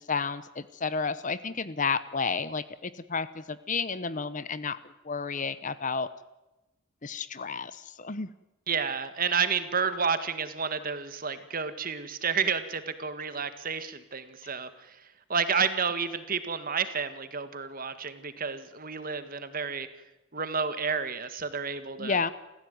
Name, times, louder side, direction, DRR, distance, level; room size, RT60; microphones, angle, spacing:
voice 1, 0.1-4.8 5.0-6.1 7.0-8.3 22.0-22.3, left 5 dB, 35° left, 15 dB, 0.8 m, -31 dB
voice 2, 8.7-14.7 15.3-19.9 20.3-22.2, right 5 dB, 40° right, 11 dB, 1.7 m, -30 dB
28.5 x 15.0 x 9.4 m, 1.0 s
head